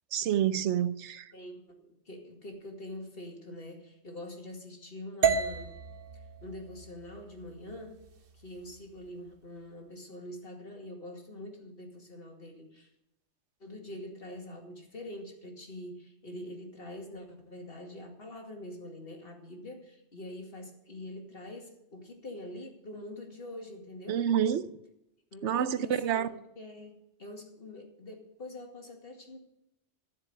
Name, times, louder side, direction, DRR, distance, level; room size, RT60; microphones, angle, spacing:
voice 1, 0.1-1.3 24.1-24.7 25.4-26.3, right 9 dB, 75° right, 0.9 m, -28 dB
voice 2, 1.3-5.7 6.1-8.0 8.3-12.9 13.6-24.2 25.3-26.9 27.2-29.4, left 1 dB, 50° left, 2.5 m, -44 dB
sound 1, 5.2-9.4, right 6 dB, 55° right, 1.1 m, -34 dB
13.5 x 7.2 x 7.9 m
omnidirectional pair, 1.2 m